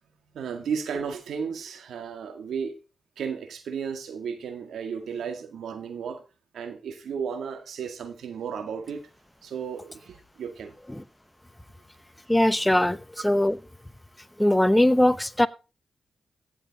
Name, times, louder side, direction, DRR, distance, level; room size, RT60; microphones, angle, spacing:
voice 1, 0.3-2.8 3.2-6.2 6.5-9.0 9.4-10.7, right 6 dB, 80° right, 1.9 m, -34 dB
voice 2, 12.3-13.6 14.4-15.5, left 1 dB, 10° left, 0.9 m, -21 dB
15.5 x 7.3 x 4.1 m
supercardioid pair, 45°, 0 cm